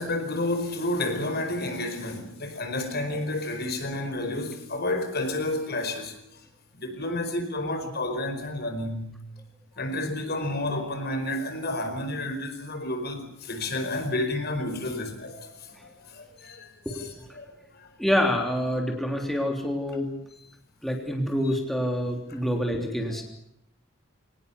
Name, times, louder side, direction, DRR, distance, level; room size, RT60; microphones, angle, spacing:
voice 1, 0.0-6.2 6.7-9.2 9.8-15.7 16.1-16.7 17.4-17.5 17.7-17.9 22.4-22.5, left 1 dB, 55° left, 4.8 m, -30 dB
voice 2, 16.8-17.3 18.0-20.1 20.8-23.2, equal, ahead, 3.3 m, -27 dB
24.5 x 19.0 x 8.2 m
head